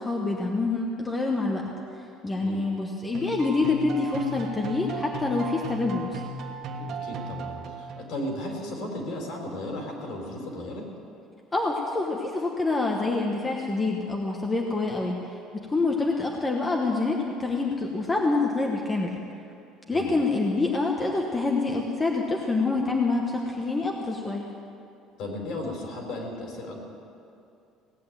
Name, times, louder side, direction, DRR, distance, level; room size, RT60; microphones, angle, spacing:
voice 1, 0.0-1.6 2.2-6.1 11.5-15.1 15.7-19.1 19.9-24.5, left 3 dB, 15° left, 0 dB, 1.1 m, -26 dB
sound 1, 3.1-8.3, right 3 dB, 45° right, 1.4 m, -36 dB
voice 2, 6.7-10.9 19.9-20.1 25.2-26.8, left 1 dB, 55° left, 1 dB, 3.7 m, -35 dB
17.5 x 8.6 x 8.9 m, 2.6 s
cardioid pair, 160°, 0 cm